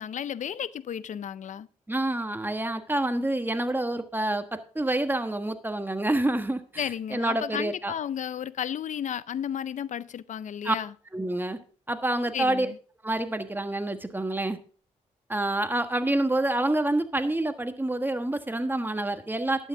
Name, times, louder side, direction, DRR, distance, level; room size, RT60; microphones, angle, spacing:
voice 1, 0.0-1.7 6.8-10.9 12.3-12.8, left 9 dB, 65° left, 0.5 m, -33 dB
voice 2, 1.9-7.9 10.6-10.7 11.1-11.6 11.9-12.7 13.0-14.6 15.3-19.7, right 1 dB, 15° right, 1.4 m, -27 dB
11.5 x 8.6 x 3.7 m
cardioid pair, 55°, 14 cm